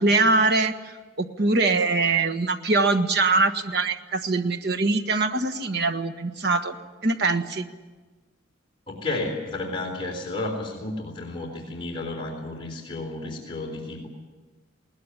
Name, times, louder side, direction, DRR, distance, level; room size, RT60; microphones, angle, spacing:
voice 1, 0.0-6.8 7.0-7.7, right 3 dB, 55° right, 7 dB, 1.4 m, -23 dB
voice 2, 8.9-14.1, left 2 dB, 30° left, -1 dB, 3.7 m, -32 dB
20.5 x 19.0 x 9.9 m, 1.3 s
head